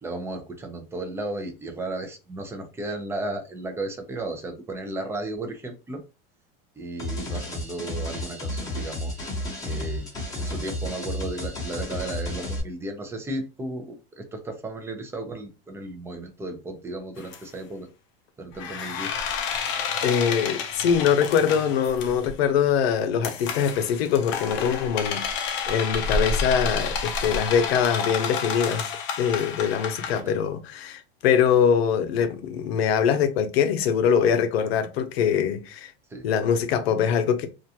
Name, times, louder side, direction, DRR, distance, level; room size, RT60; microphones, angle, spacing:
voice 1, 0.0-6.0 6.8-9.1 9.6-10.1 10.4-17.9 18.4-19.1 30.2-30.4 36.1-36.3, right 2 dB, 10° right, 0.4 m, -34 dB
sound 1, 7.0-12.6, left 1 dB, 10° left, 0.9 m, -32 dB
Creaky Door - Processed, 17.2-17.4 18.6-22.3 23.2-30.2, left 5 dB, 40° left, 0.5 m, -30 dB
voice 2, 20.0-28.9 29.2-35.9 36.2-37.5, left 7 dB, 90° left, 0.6 m, -23 dB
2.5 x 2.2 x 2.7 m
supercardioid pair, 135°, 30 cm